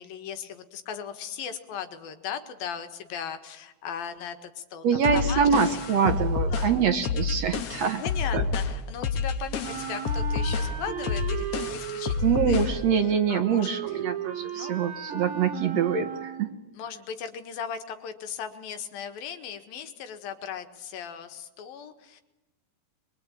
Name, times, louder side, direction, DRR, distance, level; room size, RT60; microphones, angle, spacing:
voice 1, 0.0-4.8 5.1-5.8 6.1-6.2 6.5-6.7 7.3-7.5 7.7-12.6 13.0-14.0 14.5-14.8 16.7-22.2, left 8 dB, 85° left, 8 dB, 3.4 m, -38 dB
voice 2, 4.8-8.0 8.3-8.4 12.2-16.5, right 7 dB, 60° right, 8 dB, 2.1 m, -25 dB
sound 1, 5.0-12.8, left 5 dB, 55° left, 2.1 m, -29 dB
Wind instrument woodwind instrument, 9.6-16.6, right 9 dB, 90° right, 3.8 m, -36 dB
23.5 x 23.5 x 9.0 m, 1.0 s
omnidirectional pair, 4.1 m